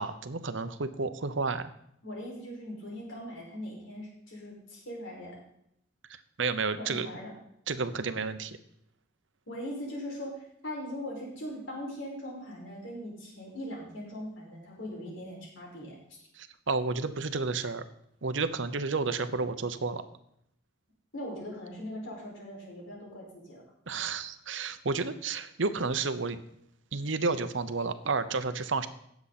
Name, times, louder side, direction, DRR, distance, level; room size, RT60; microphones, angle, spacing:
voice 1, 0.0-1.7 6.4-7.1 7.7-8.6 16.4-17.8 18.2-20.0 23.9-26.4 26.9-28.9, right 4 dB, 75° right, 12 dB, 0.8 m, -31 dB
voice 2, 2.0-5.4 6.8-7.3 9.5-16.0 21.1-23.6, equal, 80° left, -3 dB, 5.3 m, -40 dB
17.5 x 7.3 x 4.2 m, 0.74 s
head